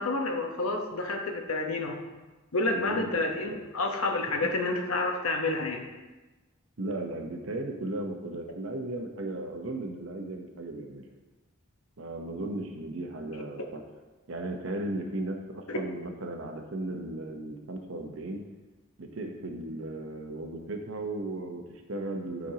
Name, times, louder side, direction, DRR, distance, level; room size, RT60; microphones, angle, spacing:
voice 1, 0.0-2.0 2.5-5.8 15.7-15.8, left 2 dB, 85° left, 3 dB, 1.0 m, -29 dB
voice 2, 2.7-3.2 3.5-3.6 4.4-4.5 6.8-11.0 12.0-13.8 14.3-18.4 19.0-22.5, right 2 dB, 70° right, 2 dB, 0.9 m, -36 dB
11.5 x 5.3 x 2.9 m, 1.2 s
head